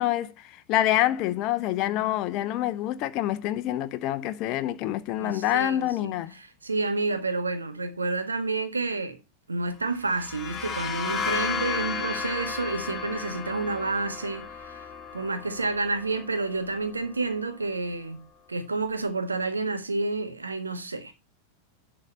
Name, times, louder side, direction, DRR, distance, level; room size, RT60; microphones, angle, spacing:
voice 1, 0.0-6.3, left 13 dB, 45° left, 0.7 m, -26 dB
voice 2, 5.2-9.2 9.5-14.8 15.1-21.1, right 3 dB, 80° right, 1.5 m, -30 dB
sound 1, 10.0-17.5, left 6 dB, 20° left, 2.0 m, -34 dB
10.5 x 3.9 x 6.3 m
figure-of-eight pair, 90°, 0 cm